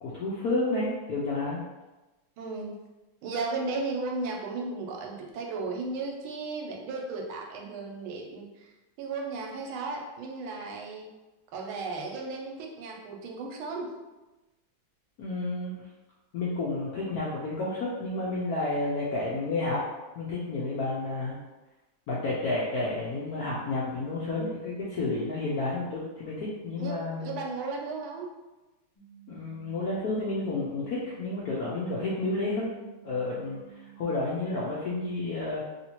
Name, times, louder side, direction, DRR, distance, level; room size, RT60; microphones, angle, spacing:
voice 1, 0.0-1.6 15.2-15.7 16.3-19.8 20.2-21.4 22.1-27.4 29.3-32.7 33.0-33.6 34.0-35.6, left 2 dB, 75° left, -6 dB, 0.8 m, -30 dB
voice 2, 2.4-2.8 3.2-8.7 9.0-11.1 11.5-13.9 26.8-28.3, right 3 dB, 80° right, 0 dB, 1.5 m, -35 dB
sound 1, 29.0-34.2, right 17 dB, 15° left, 0.7 m, -52 dB
3.1 x 2.8 x 2.9 m, 1.1 s
omnidirectional pair, 2.2 m